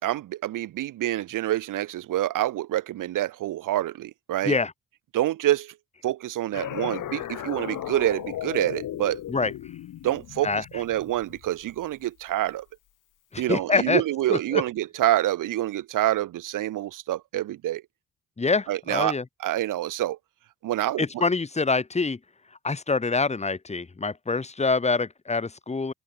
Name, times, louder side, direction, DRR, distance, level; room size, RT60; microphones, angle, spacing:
voice 1, 0.0-4.6 5.1-5.7 6.0-9.2 10.0-12.6 13.4-17.8 18.7-19.1 19.4-20.2 20.6-21.0, right 14 dB, 85° right, 2.5 m, -27 dB
sound 1, 6.5-11.9, left 12 dB, 80° left, 2.5 m, -36 dB
voice 2, 13.3-14.0 14.3-14.6 18.4-19.2 21.0-22.2 22.6-25.9, left 4 dB, 20° left, 1.1 m, -25 dB
open air
cardioid pair, 65°, 31 cm